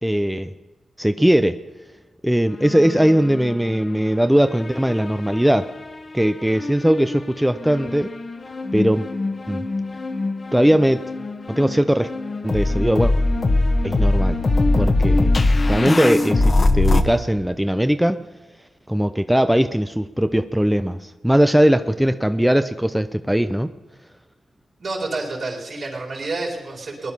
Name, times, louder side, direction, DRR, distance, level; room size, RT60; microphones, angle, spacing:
voice 1, 0.0-0.5 1.0-1.6 2.2-5.7 6.1-8.1 8.7-9.1 9.5-9.7 10.5-11.0 11.5-12.1 12.4-13.1 13.8-14.4 14.8-15.4 15.7-18.2 18.9-23.7, equal, 5° right, 10 dB, 0.5 m, -19 dB
sound 1, 2.6-4.1 4.5-5.8 6.6-17.0, left 2 dB, 45° left, 1.2 m, -22 dB
voice 2, 24.8-27.1, right 3 dB, 65° right, -2 dB, 4.4 m, -29 dB
19.5 x 10.5 x 5.6 m, 1.2 s
cardioid pair, 55°, 0 cm